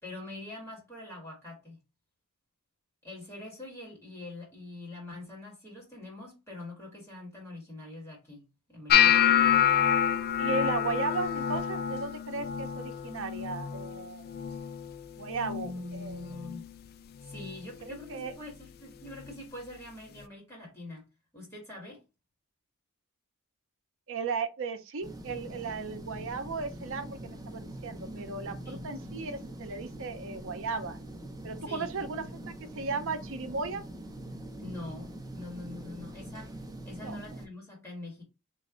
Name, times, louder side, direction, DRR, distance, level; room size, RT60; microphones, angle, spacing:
voice 1, 0.0-1.8 3.0-9.6 15.6-16.7 17.2-21.1 21.3-22.0 28.6-28.8 31.6-32.0 34.6-36.5 36.8-38.2, left 2 dB, 10° left, 1.7 m, -44 dB
sound 1, 8.9-15.0 15.3-15.8 16.1-16.7 17.3-17.5 19.3-19.4, left 9 dB, 45° left, 0.3 m, -27 dB
voice 2, 10.4-14.4 15.2-16.2 17.8-18.3 24.1-31.0 31.4-33.8 37.0-37.2, right 4 dB, 65° right, 0.6 m, -36 dB
sound 2, 25.0-37.5, right 1 dB, 15° right, 0.7 m, -43 dB
3.1 x 2.5 x 3.7 m
head